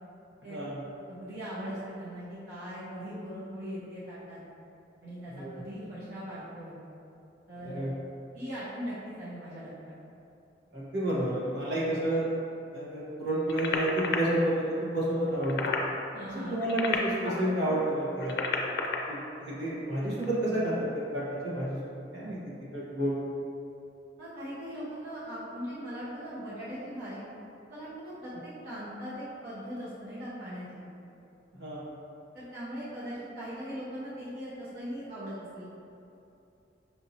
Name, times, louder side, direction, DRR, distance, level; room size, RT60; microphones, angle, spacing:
voice 1, 0.4-0.8 5.3-5.6 7.6-7.9 10.7-12.3 12.7-15.7 16.3-18.5 19.1-23.2 31.6-31.9, right 1 dB, 90° right, -8 dB, 1.2 m, -30 dB
voice 2, 1.1-4.4 5.0-6.7 7.5-7.9 8.3-9.9 16.1-16.7 24.2-27.2 27.7-28.3 28.6-30.8 32.3-35.6, equal, 60° right, -10 dB, 0.9 m, -40 dB
sound 1, 13.5-14.2 15.3-15.9 16.5-17.5 18.1-19.0 20.1-20.3, left 5 dB, 65° left, 0.4 m, -31 dB
5.9 x 2.7 x 2.8 m, 2.8 s
head